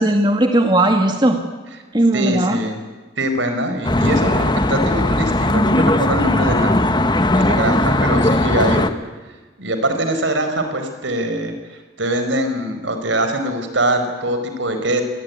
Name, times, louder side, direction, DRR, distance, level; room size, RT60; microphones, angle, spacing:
voice 1, 0.0-1.4 1.9-2.6, right 1 dB, 20° right, 4 dB, 1.9 m, -16 dB
voice 2, 2.1-2.8 3.2-6.8 7.3-8.8 9.6-15.0, right 1 dB, 70° right, 7 dB, 4.8 m, -22 dB
Traffic noise roadway noise, 3.8-8.9, left 1 dB, 20° left, 1.2 m, -17 dB
26.5 x 20.0 x 9.6 m, 1.3 s
head